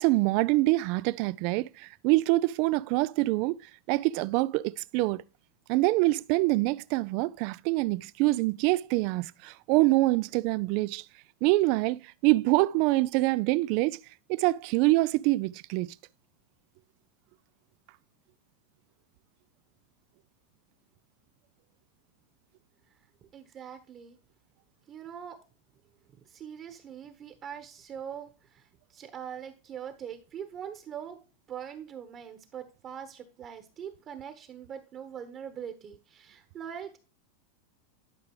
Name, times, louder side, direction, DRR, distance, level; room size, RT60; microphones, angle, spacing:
voice 1, 0.0-3.6 3.9-5.2 5.7-11.0 11.4-14.0 14.3-15.9, right 20 dB, 55° right, 0.3 m, -25 dB
voice 2, 23.3-24.2 24.9-25.4 26.3-28.6 28.9-31.2 31.5-37.0, right 8 dB, 35° right, 1.1 m, -42 dB
11.5 x 4.8 x 3.1 m
hypercardioid pair, 120°, 0 cm